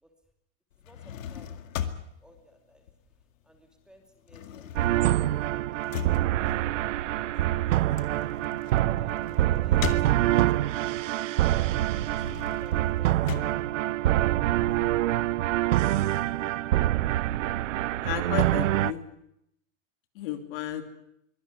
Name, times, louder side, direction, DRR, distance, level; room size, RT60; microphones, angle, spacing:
sound 1, 0.7-3.6 3.9-10.7 11.1-14.7, left 9 dB, 85° left, 2.2 m, -39 dB
voice 1, 0.8-2.8 3.4-6.5 7.0-8.3 8.9-11.2 12.0-13.5 13.7-14.0, right 1 dB, ahead, 4 dB, 2.7 m, -56 dB
sound 2, 4.7-18.9, right 14 dB, 75° right, 1.0 m, -25 dB
voice 2, 18.0-19.0 20.1-20.8, left 12 dB, 45° left, 7 dB, 2.8 m, -33 dB
23.5 x 17.0 x 9.9 m, 0.77 s
supercardioid pair, 160°, 38 cm